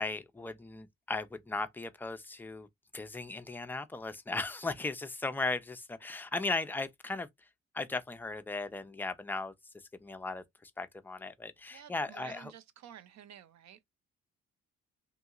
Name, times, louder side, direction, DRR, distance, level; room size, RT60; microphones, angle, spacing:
voice 1, 0.0-2.7 2.9-7.5 7.7-12.5, left 3 dB, 5° left, 0.4 m, -37 dB
voice 2, 11.7-13.8, right 10 dB, 65° right, 0.6 m, -52 dB
2.8 x 2.8 x 2.3 m
cardioid pair, 90°, 30 cm